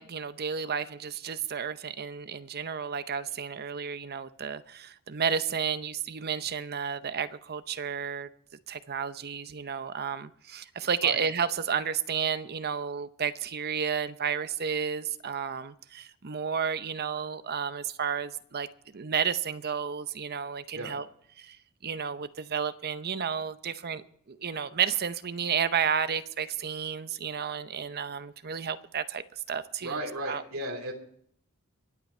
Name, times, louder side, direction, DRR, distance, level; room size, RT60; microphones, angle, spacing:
voice 1, 0.0-8.3 8.7-18.7 18.9-21.0 21.4-21.6 21.8-29.2 29.5-30.0 30.3-30.4, right 7 dB, 45° right, 0.7 m, -32 dB
voice 2, 29.8-30.9, right 1 dB, 70° right, 2.9 m, -34 dB
24.0 x 8.4 x 4.4 m
head